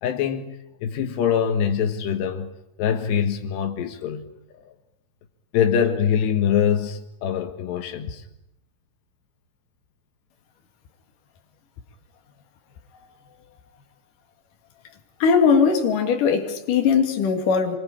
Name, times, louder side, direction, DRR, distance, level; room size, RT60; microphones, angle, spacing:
voice 1, 0.0-2.5 2.8-4.3 5.5-8.2, left 8 dB, 85° left, 3.7 m, -24 dB
voice 2, 15.2-17.8, left 6 dB, 55° left, 3.8 m, -19 dB
28.5 x 23.5 x 8.8 m
omnidirectional pair, 4.8 m